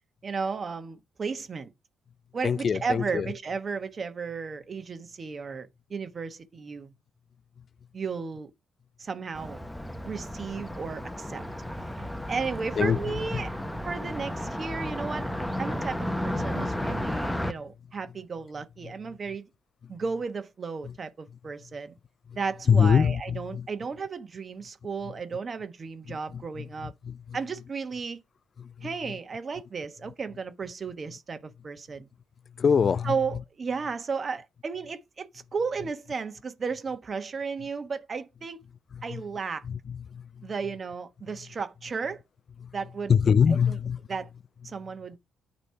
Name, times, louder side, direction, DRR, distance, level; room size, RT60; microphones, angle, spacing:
voice 1, 0.2-1.7 2.3-6.9 7.9-8.5 9.0-9.6 10.0-11.4 11.9-15.3 15.6-19.5 19.9-21.9 22.3-26.9 27.3-28.2 28.8-32.1 33.0-38.6 39.0-39.6 40.4-42.2 42.7-43.1 43.5-43.8 44.1-44.3 44.6-45.2, right 5 dB, 40° right, 1.2 m, -34 dB
voice 2, 2.4-3.3 11.8-11.9 12.8-13.4 16.5-16.6 18.8-18.9 20.8-20.9 22.3-22.4 22.7-23.7 26.1-27.4 28.6-28.9 32.6-33.2 38.9-39.2 39.6-40.5 42.6-42.7 43.1-44.0, left 6 dB, 45° left, 0.3 m, -25 dB
Car passing by, 9.3-17.5, left 1 dB, 5° left, 0.8 m, -33 dB
9.3 x 3.2 x 5.6 m
cardioid pair, 90°, 0 cm